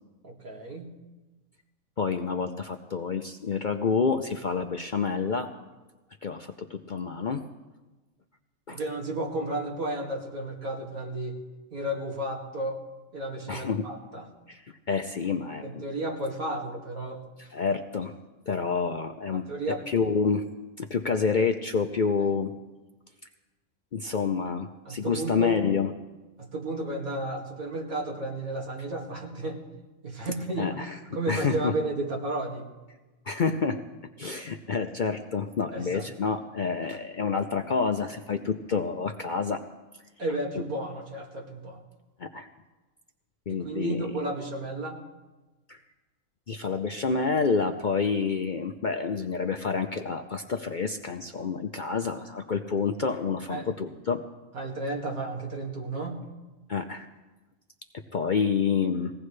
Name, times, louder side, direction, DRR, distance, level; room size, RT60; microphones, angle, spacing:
voice 1, 0.2-0.9 8.7-11.4 11.7-12.8 13.1-14.3 15.6-17.2 19.3-19.8 24.9-25.5 26.4-29.6 30.0-30.8 31.1-32.7 35.7-36.1 40.2-41.8 43.5-45.0 53.5-53.7 54.5-56.3, right 1 dB, 80° right, 0 dB, 2.7 m, -33 dB
voice 2, 2.0-5.5 6.2-7.4 8.7-8.8 13.5-13.9 14.5-14.6 14.9-15.9 17.4-18.1 18.5-19.5 19.9-20.4 20.8-22.5 23.9-25.9 30.6-31.0 31.3-31.7 33.3-33.8 34.2-39.6 42.2-42.5 43.5-44.1 45.7-45.8 46.5-54.2 56.7-57.1 58.1-59.1, left 5 dB, 50° left, 6 dB, 0.6 m, -28 dB
20.5 x 16.5 x 3.3 m, 1.2 s
omnidirectional pair, 1.5 m